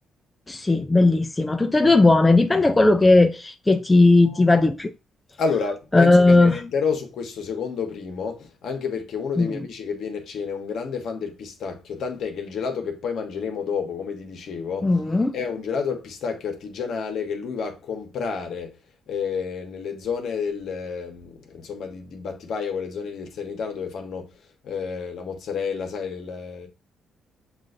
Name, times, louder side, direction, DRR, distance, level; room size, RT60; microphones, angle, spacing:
voice 1, 0.5-4.9 5.9-6.6 9.4-9.7 14.8-15.3, left 2 dB, 15° left, 0.4 m, -17 dB
voice 2, 5.4-14.9 15.3-18.7 19.1-24.3 24.6-26.7, left 5 dB, 70° left, 1.1 m, -30 dB
7.3 x 2.5 x 2.6 m
cardioid pair, 90°, 0 cm